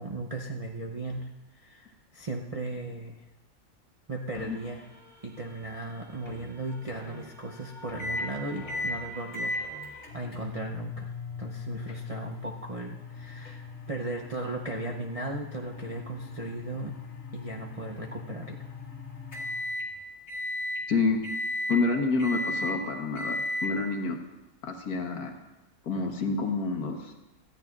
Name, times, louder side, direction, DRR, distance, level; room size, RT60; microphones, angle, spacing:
voice 1, 0.0-3.2 4.1-4.8 5.2-9.9 10.1-11.1 11.4-17.0 17.3-18.7, right 2 dB, 40° right, 0 dB, 0.5 m, -37 dB
sound 1, 4.3-10.1, left 1 dB, 30° left, 3.2 m, -48 dB
sound 2, 8.0-8.3 8.7-9.0 9.3-19.9 20.3-20.8 21.2-21.8 22.2-22.8 23.2-23.7, left 2 dB, 60° left, 2.3 m, -36 dB
voice 2, 20.9-21.2 21.7-24.2 24.6-25.3 25.8-27.1, left 4 dB, 80° left, 4 dB, 1.7 m, -28 dB
18.0 x 13.5 x 2.4 m, 1.0 s
omnidirectional pair, 1.6 m